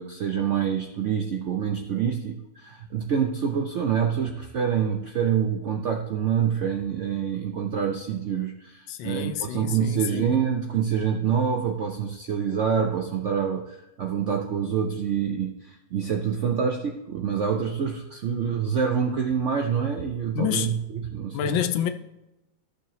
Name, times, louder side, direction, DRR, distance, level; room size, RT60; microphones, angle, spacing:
voice 1, 0.0-21.5, right 7 dB, 70° right, 0.6 m, -26 dB
voice 2, 8.9-10.4 20.3-20.8 21.3-21.9, left 9 dB, 85° left, 1.4 m, -28 dB
14.0 x 6.6 x 3.0 m
omnidirectional pair, 2.0 m